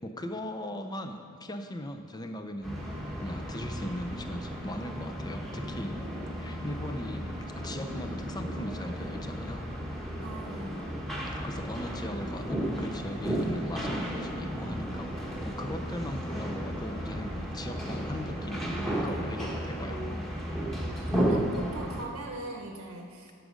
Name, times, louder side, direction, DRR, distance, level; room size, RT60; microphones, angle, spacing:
voice 1, 0.0-2.8 3.2-6.0 6.4-9.7 11.3-20.0, left 1 dB, 20° left, 6 dB, 0.6 m, -39 dB
sound 1, 2.6-22.0, equal, ahead, 1.3 m, -34 dB
voice 2, 10.2-10.8 15.6-16.4 19.8-20.2 21.1-23.3, right 2 dB, 80° right, 1 dB, 1.0 m, -42 dB
11.5 x 6.2 x 5.1 m, 2.4 s
head